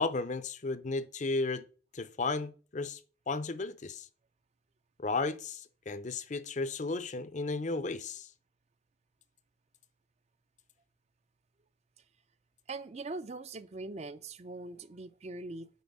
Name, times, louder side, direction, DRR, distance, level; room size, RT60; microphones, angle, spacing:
voice 1, 0.0-1.6 1.9-3.0 3.3-4.1 5.0-8.3, left 3 dB, 35° left, 0.5 m, -34 dB
voice 2, 12.7-15.7, right 3 dB, 30° right, 0.4 m, -42 dB
9.4 x 4.5 x 5.4 m
head